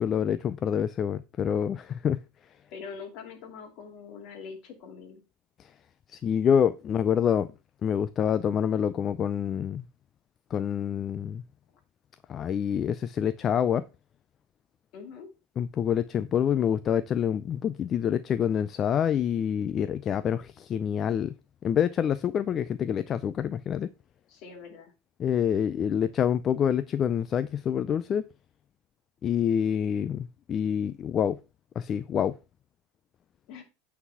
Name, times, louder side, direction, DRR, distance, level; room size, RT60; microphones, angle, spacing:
voice 1, 0.0-2.2 5.6-5.7 6.1-7.5 7.8-9.8 10.5-11.4 12.3-13.9 15.6-21.3 21.6-23.9 25.2-28.2 29.2-31.4 31.8-32.4, left 8 dB, 30° left, 0.4 m, -27 dB
voice 2, 2.7-5.2 14.9-15.3 24.3-24.9 33.5-33.6, left 5 dB, 50° left, 2.4 m, -43 dB
8.5 x 4.0 x 5.5 m
supercardioid pair, 150°, 0 cm